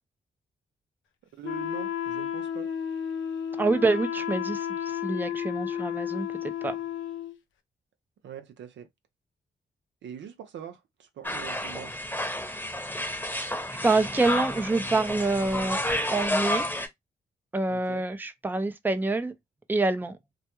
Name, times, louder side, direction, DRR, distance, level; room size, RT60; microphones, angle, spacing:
voice 1, 1.3-2.7 8.2-8.9 10.0-12.0 17.7-18.0, right 9 dB, 70° right, 0.5 m, -43 dB
Wind instrument woodwind instrument, 1.4-7.4, left 9 dB, 80° left, 0.5 m, -32 dB
voice 2, 3.6-6.3 6.6-6.8 13.8-15.8 16.1-16.7 17.5-19.3 19.7-20.2, right 3 dB, 10° right, 0.5 m, -26 dB
sound 1, 11.2-16.9, left 1 dB, 10° left, 0.9 m, -30 dB
2.3 x 2.2 x 2.9 m
supercardioid pair, 45°, 20 cm